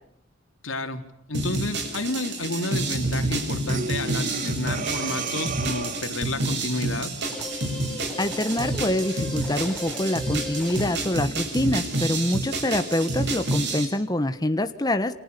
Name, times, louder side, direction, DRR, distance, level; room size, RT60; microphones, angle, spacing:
voice 1, 0.6-1.0 1.3-7.1, left 2 dB, 90° left, 7 dB, 3.4 m, -30 dB
sound 1, 1.3-13.9, right 2 dB, 60° right, 7.2 m, -29 dB
Breathing, 3.7-6.3, right 5 dB, 45° right, 1.8 m, -32 dB
sound 2, 7.2-11.1, left 3 dB, 5° left, 6.8 m, -37 dB
voice 2, 8.2-15.1, left 1 dB, 20° left, 9 dB, 1.2 m, -25 dB
29.5 x 27.5 x 6.9 m, 0.75 s
head